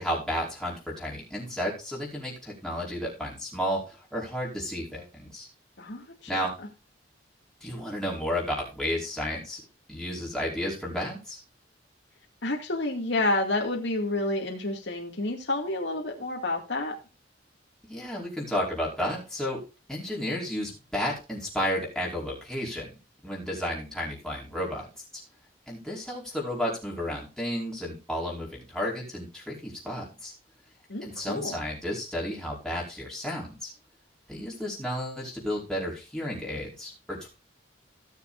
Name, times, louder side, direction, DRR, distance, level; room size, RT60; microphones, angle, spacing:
voice 1, 0.0-5.5 6.3-6.5 7.6-9.6 9.9-11.4 17.9-19.6 19.9-22.9 23.2-24.9 25.7-30.3 31.0-33.7 34.3-37.3, equal, 5° left, -4 dB, 5.0 m, -32 dB
voice 2, 5.8-6.3 12.4-16.9 30.9-31.5, left 2 dB, 70° left, 0 dB, 2.3 m, -29 dB
17.5 x 7.2 x 2.6 m, 0.29 s
head